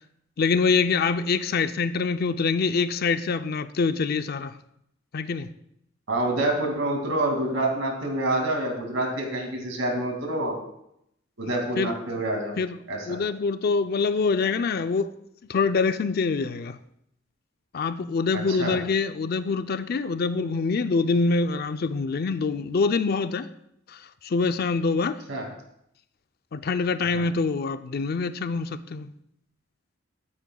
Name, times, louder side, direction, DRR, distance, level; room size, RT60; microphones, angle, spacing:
voice 1, 0.4-4.5 5.1-5.5 11.8-11.9 12.6-12.8 13.1-15.1 15.5-16.8 17.7-23.5 23.9-25.2 26.5-29.1, left 4 dB, 50° left, 0.4 m, -25 dB
voice 2, 6.1-10.6 11.4-12.5 12.9-13.2 18.3-18.8 25.3-25.5 27.0-27.2, right 1 dB, 75° right, 2.4 m, -27 dB
14.0 x 8.6 x 2.3 m
head